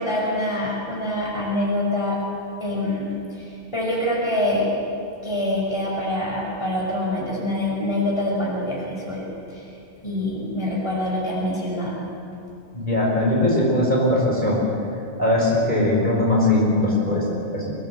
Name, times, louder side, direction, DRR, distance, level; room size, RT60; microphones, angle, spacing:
voice 1, 0.0-2.2 2.6-4.9 5.2-9.7 10.0-12.0, left 1 dB, 25° left, -4 dB, 6.0 m, -25 dB
voice 2, 12.7-14.6 15.2-17.2 17.5-17.6, left 1 dB, 40° left, -4 dB, 6.1 m, -20 dB
25.5 x 18.5 x 8.1 m, 2.6 s
omnidirectional pair, 1.2 m